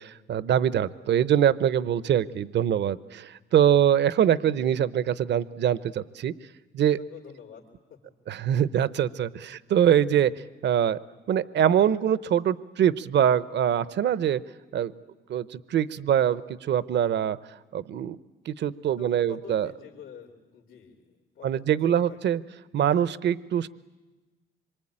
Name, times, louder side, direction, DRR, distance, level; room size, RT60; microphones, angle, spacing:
voice 1, 0.0-6.3 6.7-7.0 8.3-10.3 10.6-11.0 11.3-14.4 14.7-14.9 15.3-17.4 17.7-18.2 18.5-19.7 21.4-22.4 22.7-23.7, right 9 dB, 60° right, 17 dB, 0.8 m, -23 dB
voice 2, 6.9-8.0 19.0-22.2, left 7 dB, 90° left, -4 dB, 3.3 m, -47 dB
25.5 x 24.0 x 8.8 m, 1.2 s
cardioid pair, 90°, 20 cm